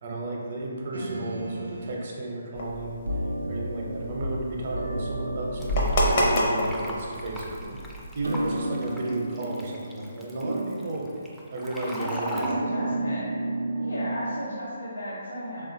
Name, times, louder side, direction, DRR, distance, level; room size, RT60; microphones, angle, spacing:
voice 1, 0.0-3.0 3.5-11.0 11.5-12.8, right 2 dB, 50° right, -2 dB, 0.6 m, -33 dB
sound 1, 0.9-2.0 3.1-4.4 4.7-7.6 8.2-10.2 10.4-11.3 12.3-14.5, right 1 dB, 85° right, 0.3 m, -32 dB
sound 2, 2.5-8.6, equal, 50° left, 0.5 m, -29 dB
Fill (with liquid), 5.6-12.5, equal, ahead, 0.3 m, -40 dB
voice 2, 11.8-13.2 13.7-15.7, equal, 75° left, -8 dB, 0.9 m, -34 dB
3.5 x 2.4 x 2.6 m, 2.2 s
figure-of-eight pair, 145°, 0 cm